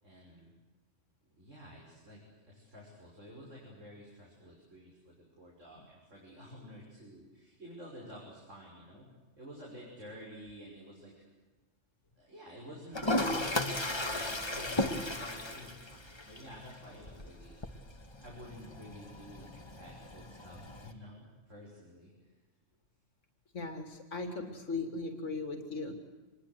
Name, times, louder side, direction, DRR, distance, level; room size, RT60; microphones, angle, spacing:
voice 1, 0.0-0.5 1.3-9.1 9.4-11.2 12.2-17.5 18.2-22.4, equal, 80° right, -3 dB, 6.6 m, -51 dB
Toilet flush, 12.9-20.9, left 1 dB, 20° left, 1.7 m, -36 dB
voice 2, 23.5-25.9, left 3 dB, 75° left, 6 dB, 3.1 m, -38 dB
27.0 x 21.5 x 8.2 m, 1.2 s
omnidirectional pair, 1.3 m